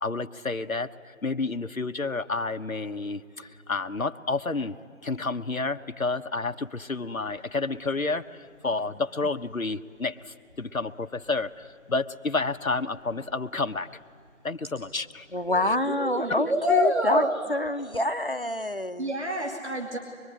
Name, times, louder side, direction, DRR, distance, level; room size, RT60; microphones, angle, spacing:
voice 1, 0.0-0.9 1.2-4.7 5.0-8.2 8.6-10.1 10.6-13.9 14.4-15.2, left 3 dB, 90° left, 8 dB, 1.2 m, -30 dB
voice 2, 15.3-19.2, left 1 dB, 45° left, 9 dB, 0.9 m, -27 dB
voice 3, 15.9-17.3 19.0-20.0, left 1 dB, 55° right, 0 dB, 2.9 m, -26 dB
24.0 x 23.5 x 9.8 m, 2.3 s
figure-of-eight pair, 175°, 40 cm